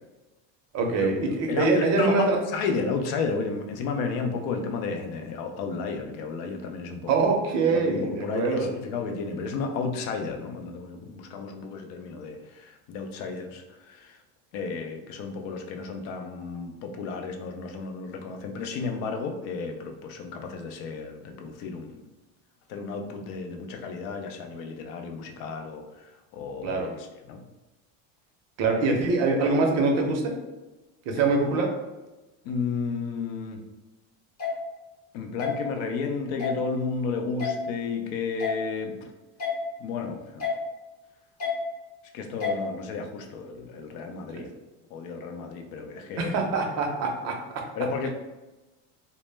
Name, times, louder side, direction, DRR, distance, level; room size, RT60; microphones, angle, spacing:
voice 1, 0.7-2.4 7.1-8.7 26.6-26.9 28.6-30.3 31.1-31.7 44.3-44.5 46.2-47.6, right 3 dB, 45° right, 2 dB, 0.5 m, -24 dB
voice 2, 1.5-7.3 7.7-14.2 14.5-22.0 22.7-27.4 32.4-33.6 35.1-39.1 39.8-40.5 42.1-44.5 44.9-46.3 47.7-48.1, left 4 dB, 70° left, 4 dB, 0.5 m, -32 dB
sound 1, 34.4-34.5 35.4-35.5 36.4-36.6 37.4-37.5 38.4-38.6 39.4-39.5 40.4-40.6 41.4-41.5 42.4-42.6, left 7 dB, 35° left, 0.9 m, -28 dB
2.1 x 2.0 x 3.2 m, 1.1 s
cardioid pair, 145°, 38 cm